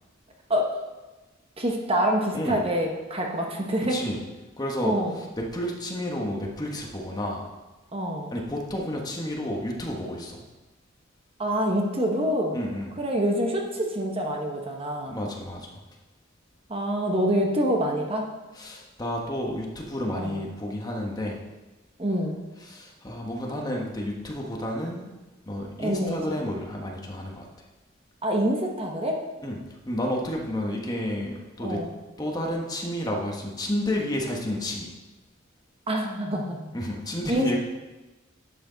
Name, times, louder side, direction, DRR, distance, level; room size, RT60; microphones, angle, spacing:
voice 1, 1.6-4.0 4.8-5.2 7.9-8.3 11.4-12.6 13.0-15.2 16.7-18.3 20.2-20.4 22.0-22.5 25.8-26.4 28.2-29.2 31.6-31.9 35.9-36.7 37.3-37.6, equal, 30° right, 1 dB, 1.1 m, -26 dB
voice 2, 4.6-5.0 5.4-7.4 8.3-10.4 12.5-12.9 15.1-15.8 18.6-21.4 22.7-25.1 25.5-27.5 29.4-29.6 29.9-31.8 32.2-34.9 36.7-37.6, left 1 dB, 20° left, 0 dB, 1.3 m, -31 dB
11.5 x 7.9 x 4.0 m, 1.2 s
head